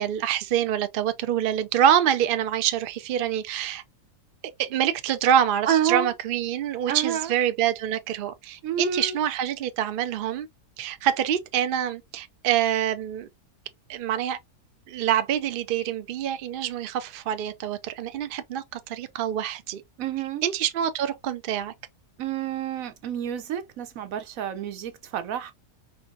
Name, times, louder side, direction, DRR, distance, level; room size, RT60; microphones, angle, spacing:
voice 1, 0.0-3.8 4.6-10.5 10.8-13.3 13.9-14.4 14.9-19.8 20.4-21.7, right 10 dB, 85° right, 0.4 m, -26 dB
voice 2, 5.7-6.1 6.9-7.3 8.6-9.1 20.0-20.4 22.2-25.5, right 9 dB, 65° right, 1.0 m, -28 dB
4.4 x 2.7 x 2.4 m
omnidirectional pair, 1.7 m